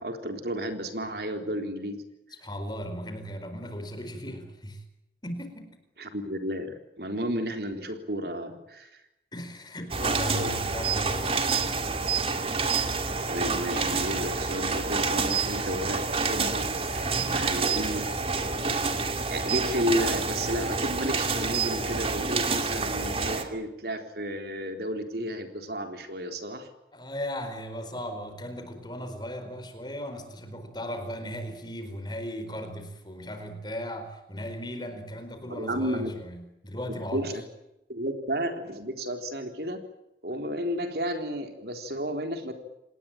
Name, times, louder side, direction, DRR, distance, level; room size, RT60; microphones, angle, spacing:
voice 1, 0.0-2.0 6.0-9.0 10.3-10.5 13.3-18.0 19.3-26.7 35.5-36.1 37.1-37.4 37.9-39.8 40.2-42.5, equal, 60° right, 6 dB, 3.8 m, -32 dB
voice 2, 2.4-4.8 5.2-5.8 9.3-11.3 17.0-18.0 26.9-37.4, equal, 25° left, 8 dB, 4.6 m, -37 dB
sound 1, 9.9-23.4, right 4 dB, 30° right, 2.7 m, -28 dB
28.0 x 19.5 x 8.9 m, 0.89 s
head